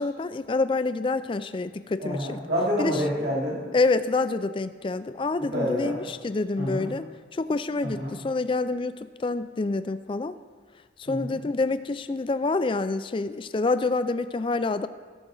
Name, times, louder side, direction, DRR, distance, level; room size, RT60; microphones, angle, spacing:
voice 1, 0.0-2.4 2.8-3.0 3.7-7.1 7.3-8.9 9.2-10.3 11.0-14.9, left 3 dB, 25° left, 12 dB, 0.3 m, -27 dB
voice 2, 2.0-3.6 5.5-6.0 6.6-6.9 7.8-8.1 11.1-11.4, equal, 65° right, -5 dB, 2.5 m, -28 dB
17.0 x 6.0 x 3.9 m, 1.5 s
head